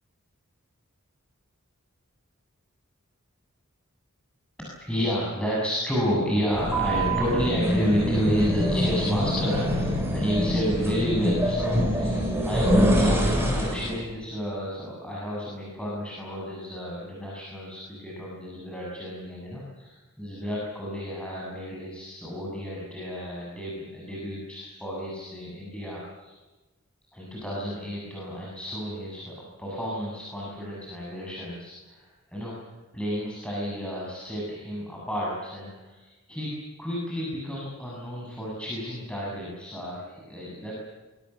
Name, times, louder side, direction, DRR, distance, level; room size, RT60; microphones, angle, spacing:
voice 1, 4.8-26.4 27.1-32.5 32.9-36.5 36.8-40.8, equal, 5° left, -5 dB, 7.5 m, -31 dB
sound 1, 6.5-14.0, equal, 10° right, 7.4 m, -25 dB
25.5 x 24.0 x 7.1 m, 1.1 s
head